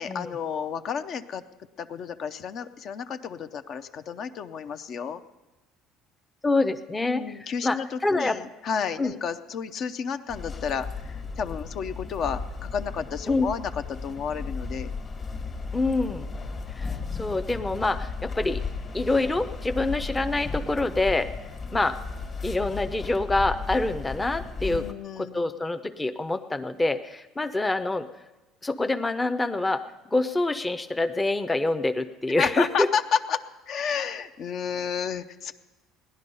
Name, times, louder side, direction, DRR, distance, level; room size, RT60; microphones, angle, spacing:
voice 1, 0.0-1.4 1.8-5.2 7.0-14.9 24.6-25.5 32.4-35.5, left 7 dB, 50° left, 10 dB, 0.7 m, -31 dB
voice 2, 6.4-8.4 9.0-9.1 13.3-13.5 15.7-16.3 16.8-18.6 18.9-21.3 21.7-22.0 22.4-24.8 25.2-28.1 28.6-29.8 30.1-32.9, left 2 dB, 15° left, 9 dB, 0.6 m, -26 dB
sound 1, 10.3-24.9, left 4 dB, 35° left, 1.6 m, -35 dB
17.0 x 10.5 x 5.5 m, 1.1 s
cardioid pair, 115°, 0 cm